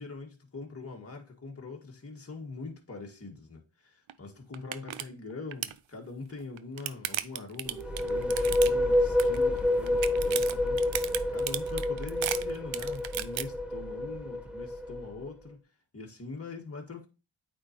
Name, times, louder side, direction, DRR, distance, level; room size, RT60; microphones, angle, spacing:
voice 1, 0.0-15.6 15.9-17.1, left 3 dB, 30° left, 1.8 m, -43 dB
sound 1, 4.1-4.2 4.5-5.0 5.3-5.8 6.4-8.9 9.2-9.6 9.9-13.4, right 12 dB, 70° right, 0.6 m, -34 dB
sound 2, 7.7-15.3, left 1 dB, ahead, 1.0 m, -28 dB
8.7 x 3.9 x 3.0 m
cardioid pair, 55°, 48 cm